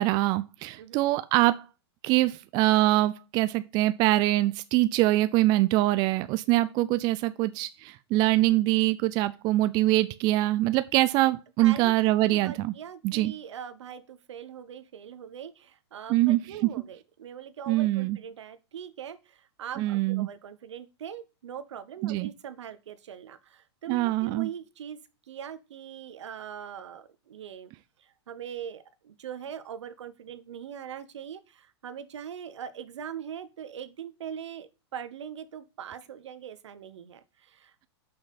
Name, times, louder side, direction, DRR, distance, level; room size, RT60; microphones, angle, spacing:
voice 1, 0.0-1.6 2.0-12.7 13.0-13.3 16.1-16.4 17.7-18.2 19.8-20.3 22.0-22.3 23.9-24.5, right 17 dB, 30° right, 0.4 m, -24 dB
voice 2, 11.6-25.0 25.3-27.7 28.0-37.9, right 8 dB, 80° right, 0.9 m, -41 dB
6.4 x 5.8 x 4.1 m
hypercardioid pair, 145°, 15 cm